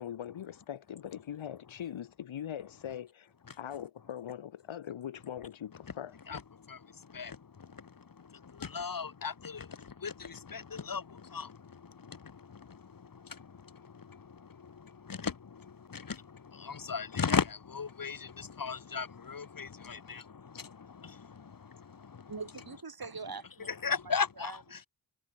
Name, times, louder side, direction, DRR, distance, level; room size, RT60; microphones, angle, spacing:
voice 1, 0.0-6.1, left 10 dB, 85° left, 1.5 m, -41 dB
voice 2, 6.3-22.3 23.7-24.9, left 6 dB, 45° left, 1.3 m, -38 dB
voice 3, 22.3-23.7 24.1-24.6, right 4 dB, 50° right, 3.5 m, -43 dB
cardioid pair, 40°, 46 cm